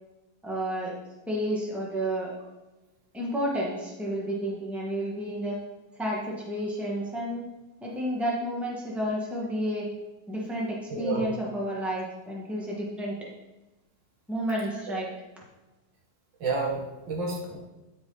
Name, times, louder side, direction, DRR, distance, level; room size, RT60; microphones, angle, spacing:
voice 1, 0.4-0.9 1.3-2.3 3.1-5.6 6.0-7.4 7.8-9.9 10.3-13.1 14.3-15.1, equal, ahead, -3 dB, 1.5 m, -31 dB
voice 2, 10.9-11.3 16.4-17.6, right 3 dB, 80° right, -1 dB, 2.4 m, -30 dB
12.5 x 5.1 x 4.0 m, 1.0 s
omnidirectional pair, 2.0 m